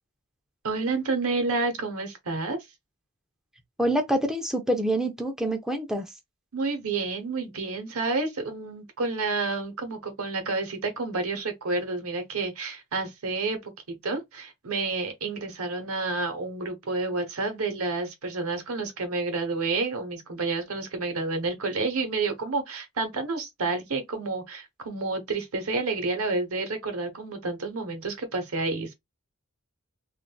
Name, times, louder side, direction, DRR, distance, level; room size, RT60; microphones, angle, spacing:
voice 1, 0.6-2.6 6.5-13.6 13.9-28.9, right 3 dB, 85° right, 1.0 m, -29 dB
voice 2, 3.8-6.1, right 1 dB, 5° right, 0.5 m, -26 dB
3.6 x 2.5 x 2.2 m
head